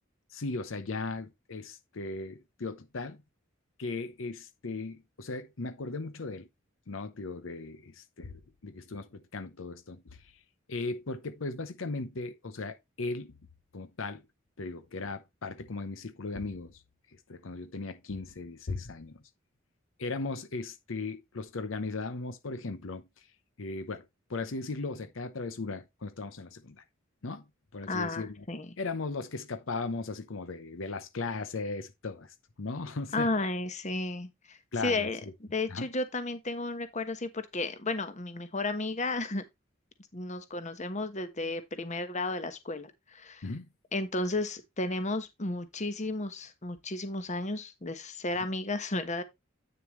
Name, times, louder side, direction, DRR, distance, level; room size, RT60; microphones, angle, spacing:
voice 1, 0.3-3.2 3.8-6.5 6.9-10.4 10.7-13.3 13.7-14.2 14.6-16.8 17.1-19.2 20.0-23.3 23.6-24.0 24.3-26.8 27.2-27.4 27.7-28.4 28.8-33.3 34.7-35.1 35.7-35.9 43.4-43.7, left 3 dB, 75° left, 0.8 m, -37 dB
voice 2, 27.9-28.7 33.1-34.6 34.8-35.2 35.5-39.4 40.1-43.4 43.9-49.2, left 2 dB, 35° left, 1.2 m, -33 dB
9.0 x 6.6 x 3.1 m
head